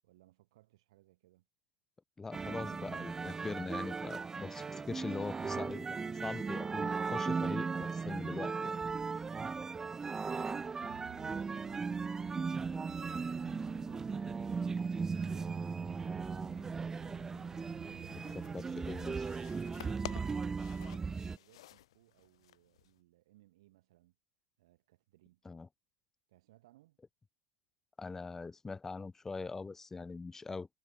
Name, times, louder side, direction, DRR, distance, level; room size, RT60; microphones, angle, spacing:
voice 1, 0.0-1.5 10.3-14.6 17.7-18.7 20.2-24.2 24.6-25.4 26.3-27.0, right 17 dB, 75° right, 7.7 m, -65 dB
voice 2, 2.2-8.8 18.5-19.3 25.4-25.7 28.0-30.7, left 4 dB, 15° left, 2.3 m, -42 dB
sound 1, 2.3-21.4, right 5 dB, 15° right, 1.1 m, -37 dB
sound 2, 10.8-19.1, right 20 dB, 50° right, 0.8 m, -53 dB
sound 3, 18.0-23.0, left 14 dB, 80° left, 3.5 m, -52 dB
hypercardioid pair, 110°, 3 cm